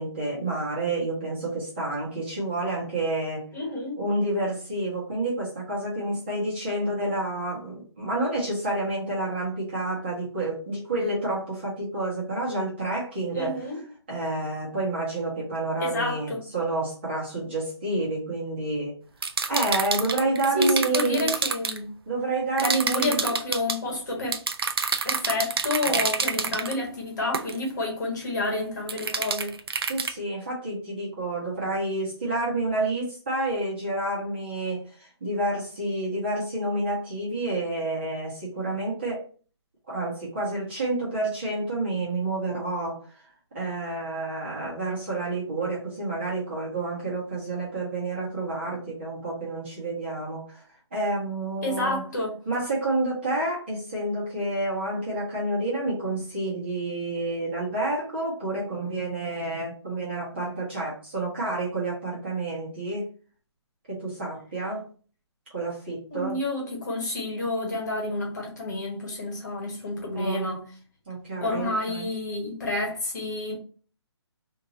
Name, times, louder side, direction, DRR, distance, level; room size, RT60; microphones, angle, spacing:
voice 1, 0.0-3.4 4.0-13.6 14.1-19.0 19.5-21.3 22.1-23.2 25.8-26.0 26.3-26.4 29.8-39.2 39.9-43.0 43.5-50.6 50.9-52.0 52.4-63.0 63.9-64.8 65.5-66.4 70.1-70.5 71.1-72.1, right 2 dB, 25° right, 1.3 m, -29 dB
voice 2, 3.5-4.0 13.3-13.8 15.8-16.4 20.5-21.9 22.6-24.3 25.0-29.6 51.6-52.4 66.1-70.7 71.4-73.6, left 2 dB, 40° left, 1.4 m, -29 dB
sound 1, 19.2-21.8 22.6-23.8 24.3-26.7 27.3-27.6 28.9-30.1, right 5 dB, 60° right, 0.5 m, -27 dB
3.6 x 2.8 x 2.8 m
hypercardioid pair, 180°, 15 cm